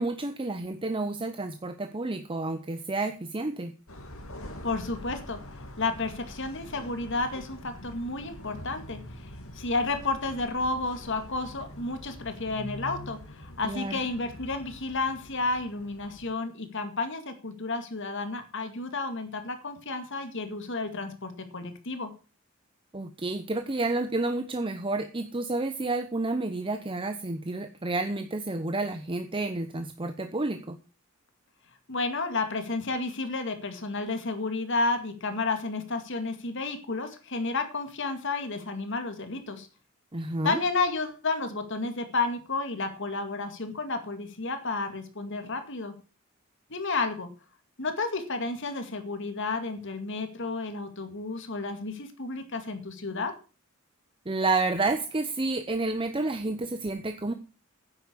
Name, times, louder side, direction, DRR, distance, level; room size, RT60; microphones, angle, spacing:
voice 1, 0.0-3.7 13.6-14.0 22.9-30.8 40.1-40.6 54.3-57.3, right 2 dB, 25° right, 8 dB, 0.8 m, -30 dB
sound 1, 3.9-16.3, equal, 80° left, 2.5 m, -44 dB
voice 2, 4.6-5.4 5.8-22.1 31.9-39.7 40.4-45.9 46.7-47.3 47.8-53.3, left 3 dB, 60° left, 7 dB, 2.2 m, -31 dB
9.9 x 7.9 x 6.8 m, 0.35 s
head